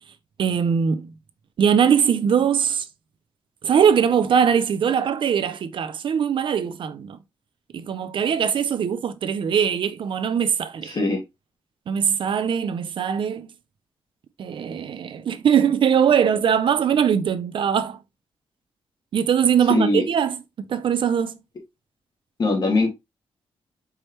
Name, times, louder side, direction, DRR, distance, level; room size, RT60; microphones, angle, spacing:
voice 1, 0.4-1.1 1.6-2.9 3.6-7.2 7.7-11.0 11.9-13.5 14.4-18.0 19.1-21.4, right 8 dB, 60° right, 0.5 m, -21 dB
voice 2, 10.9-11.2 19.7-20.0 22.4-22.9, left 3 dB, 45° left, 1.8 m, -21 dB
4.7 x 3.1 x 2.9 m
wide cardioid pair, 135°, 10 cm